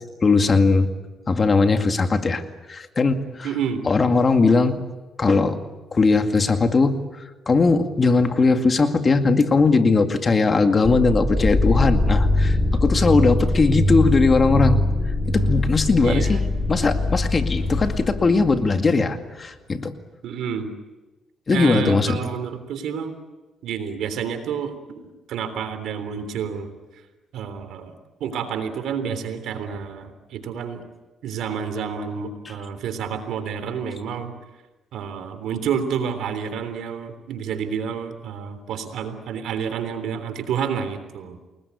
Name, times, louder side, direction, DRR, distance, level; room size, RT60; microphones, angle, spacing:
voice 1, 0.2-0.9 1.3-2.4 2.7-3.5 3.9-4.8 5.2-5.6 5.9-6.9 7.5-14.8 15.3-16.4 16.7-19.9 21.5-22.2, left 4 dB, 35° left, 6 dB, 2.2 m, -19 dB
voice 2, 3.4-3.8 16.0-16.4 20.2-20.7 21.5-23.1 23.6-26.7 27.3-27.9 28.2-30.8 31.2-34.3 34.9-41.4, right 7 dB, 80° right, 9 dB, 3.4 m, -29 dB
sound 1, 10.9-18.7, left 1 dB, 5° left, 4.0 m, -22 dB
sound 2, 15.0-20.0, left 7 dB, 75° left, 3.7 m, -40 dB
29.5 x 20.0 x 8.3 m, 1.2 s
cardioid pair, 90°, 0 cm